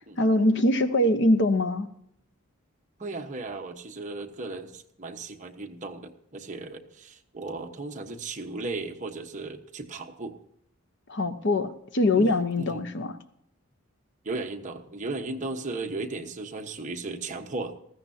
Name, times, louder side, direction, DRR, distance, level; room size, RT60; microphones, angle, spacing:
voice 1, 0.2-1.9 11.1-13.2, left 1 dB, 55° left, 10 dB, 0.9 m, -23 dB
voice 2, 3.0-10.3 12.1-12.3 12.6-12.8 14.2-17.7, right 3 dB, 35° right, 3 dB, 1.2 m, -36 dB
19.5 x 15.5 x 2.8 m, 0.73 s
head